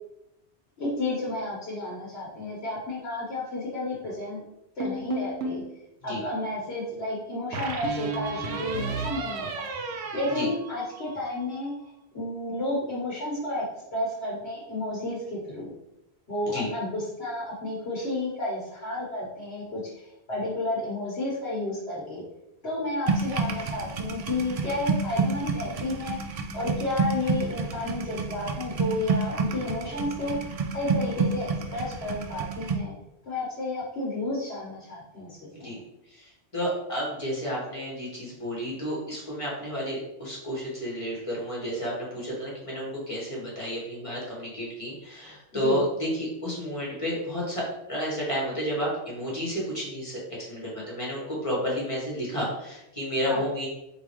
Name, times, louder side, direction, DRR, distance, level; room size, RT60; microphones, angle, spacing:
voice 1, 0.8-4.4 4.7-5.6 6.0-9.7 10.1-11.7 12.1-13.6 13.9-15.7 16.3-22.2 22.6-26.2 26.5-30.4 30.7-32.9 33.2-35.8 45.5-45.8 53.2-53.4, left 2 dB, 70° left, -6 dB, 1.5 m, -31 dB
sound 1, 4.8-5.7 7.5-11.3, right 3 dB, 75° right, 0.9 m, -33 dB
sound 2, 23.1-32.8, right 4 dB, 55° right, 0.4 m, -29 dB
voice 2, 36.1-50.2 50.5-53.7, equal, 30° left, -5 dB, 1.5 m, -31 dB
4.8 x 3.7 x 3.0 m, 0.88 s
omnidirectional pair, 1.1 m